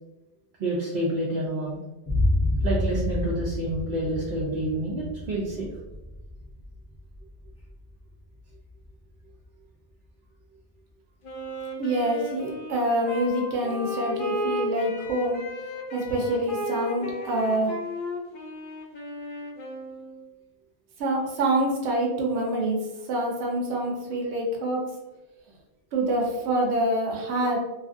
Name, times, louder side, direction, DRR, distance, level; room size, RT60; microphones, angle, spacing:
voice 1, 0.6-1.8 2.6-5.7, right 1 dB, 60° right, -4 dB, 0.6 m, -28 dB
sound 1, 2.1-9.4, left 1 dB, 25° left, 0.6 m, -30 dB
Wind instrument woodwind instrument, 11.2-20.2, equal, 60° left, 0.7 m, -34 dB
voice 2, 11.8-15.4 15.9-17.7 21.0-22.8 23.1-24.8 25.9-27.6, right 1 dB, 90° right, 0 dB, 1.0 m, -26 dB
2.8 x 2.5 x 2.5 m, 1.0 s
omnidirectional pair, 1.1 m